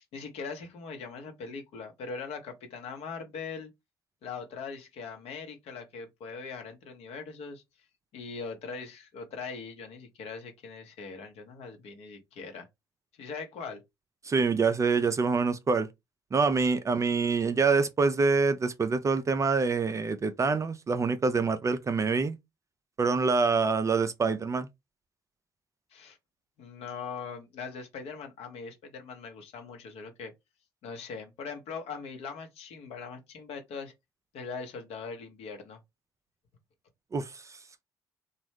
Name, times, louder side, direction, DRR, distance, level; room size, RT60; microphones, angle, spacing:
voice 1, 0.0-3.7 4.2-7.6 8.1-12.7 13.2-13.8 25.9-26.2 26.6-30.3 30.8-33.9 34.3-35.8, left 5 dB, 55° left, 1.0 m, -41 dB
voice 2, 14.2-15.9 16.3-22.4 23.0-24.7 37.1-37.6, right 4 dB, 25° right, 0.4 m, -26 dB
3.0 x 2.3 x 3.2 m
figure-of-eight pair, 50°, 13 cm